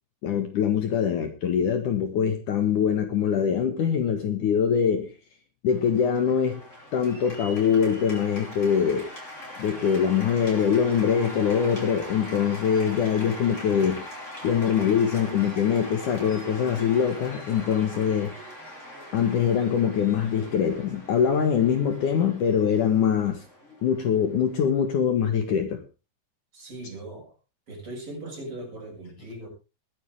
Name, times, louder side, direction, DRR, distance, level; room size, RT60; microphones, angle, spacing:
voice 1, 0.2-5.1 5.6-6.6 6.9-9.1 9.6-14.0 14.4-18.3 19.1-23.4 23.8-25.8, left 7 dB, 60° left, 6 dB, 2.8 m, -23 dB
Cheering / Applause, 5.7-24.9, left 1 dB, 15° left, 6.0 m, -42 dB
voice 2, 26.5-27.3 27.7-29.5, right 1 dB, 35° right, -1 dB, 7.5 m, -39 dB
21.0 x 10.0 x 3.6 m, 0.31 s
omnidirectional pair, 4.5 m